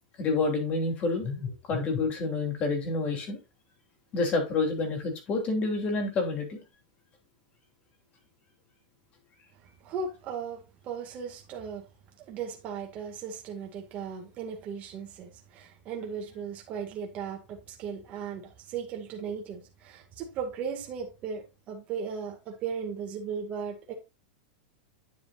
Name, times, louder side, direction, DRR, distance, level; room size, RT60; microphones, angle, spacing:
voice 1, 0.2-3.4 4.1-6.6, left 3 dB, 30° left, 3.1 m, -28 dB
voice 2, 9.8-11.8 12.2-23.9, right 6 dB, 35° right, 2.1 m, -37 dB
10.0 x 6.8 x 2.6 m
supercardioid pair, 140°, 5 cm